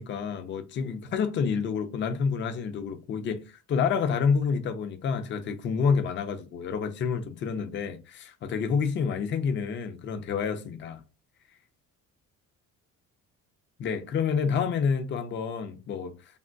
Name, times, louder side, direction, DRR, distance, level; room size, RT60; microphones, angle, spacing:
voice 1, 0.0-11.0 13.8-16.1, left 6 dB, 35° left, 0.4 m, -28 dB
3.4 x 2.2 x 2.5 m
cardioid pair, 160°, 33 cm